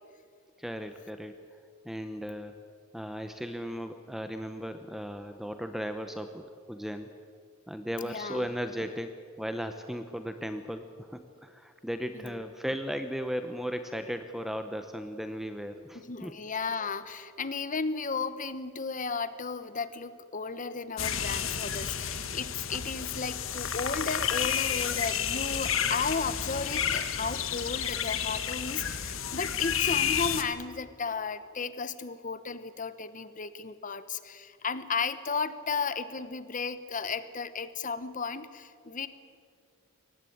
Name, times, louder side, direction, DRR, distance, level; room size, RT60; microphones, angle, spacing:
voice 1, 0.6-1.3 1.8-2.6 2.9-7.1 7.7-16.4 17.4-17.5, equal, ahead, 8 dB, 0.8 m, -36 dB
voice 2, 8.0-8.5 12.1-12.4 15.9-39.1, left 5 dB, 40° left, 13 dB, 1.1 m, -34 dB
sound 1, 21.0-30.4, left 8 dB, 70° left, 1.5 m, -31 dB
23.5 x 18.5 x 8.6 m, 2.2 s
head